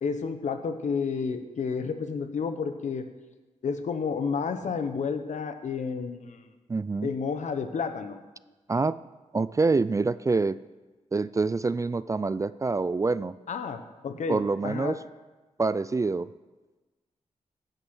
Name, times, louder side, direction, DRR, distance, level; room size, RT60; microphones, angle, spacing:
voice 1, 0.0-3.1 3.6-6.5 7.0-8.2 13.5-15.0, left 5 dB, 70° left, 8 dB, 1.1 m, -31 dB
voice 2, 6.7-7.1 8.7-9.0 9.3-10.6 11.1-13.4 14.3-15.0 15.6-16.3, right 3 dB, 25° right, 17 dB, 0.3 m, -26 dB
15.5 x 6.7 x 6.2 m, 1.2 s
cardioid pair, 80°, 13 cm